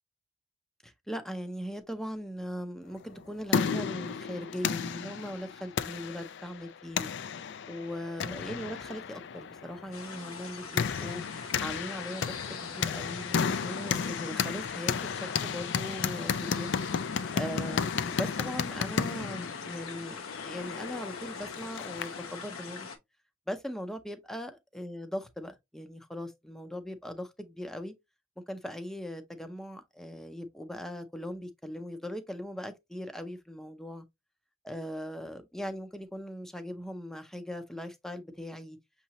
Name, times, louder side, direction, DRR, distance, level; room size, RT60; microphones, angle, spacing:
voice 1, 0.8-11.2 11.6-16.7 17.3-22.9 23.5-27.9 28.5-34.0 34.6-38.8, equal, ahead, 0.5 m, -39 dB
sound 1, 3.1-22.3, left 6 dB, 55° left, 0.4 m, -33 dB
sound 2, 9.9-23.0, left 5 dB, 90° left, 1.0 m, -43 dB
6.5 x 2.8 x 2.9 m
head